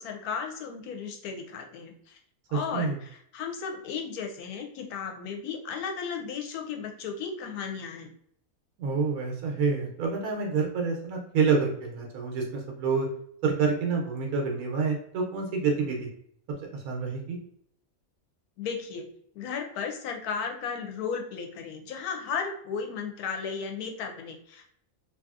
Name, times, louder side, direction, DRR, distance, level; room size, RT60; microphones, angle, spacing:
voice 1, 0.0-2.2 2.5-8.1 18.6-19.1 19.3-24.6, left 6 dB, 90° left, 3 dB, 1.1 m, -35 dB
voice 2, 2.5-3.0 8.8-13.1 13.4-16.1 16.7-17.4, right 5 dB, 85° right, 1 dB, 1.1 m, -28 dB
2.7 x 2.7 x 2.3 m, 0.67 s
omnidirectional pair, 1.5 m